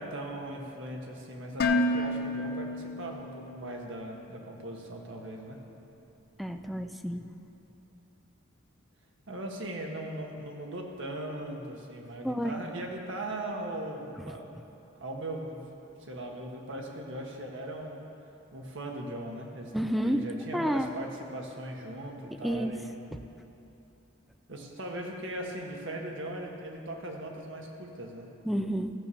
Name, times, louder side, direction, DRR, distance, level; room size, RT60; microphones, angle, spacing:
voice 1, 0.0-5.6 9.3-14.5 14.9-15.6 16.0-18.0 18.5-22.9 24.5-28.3, right 1 dB, 65° right, 1 dB, 1.5 m, -39 dB
Dishes pots and pans, 1.6-3.7, left 1 dB, 50° left, 0.6 m, -29 dB
voice 2, 6.4-7.3 12.2-12.5 14.2-14.3 19.7-20.9 22.4-22.7 23.1-23.2 28.4-28.9, equal, ahead, 7 dB, 0.4 m, -30 dB
14.5 x 6.8 x 7.0 m, 2.8 s
head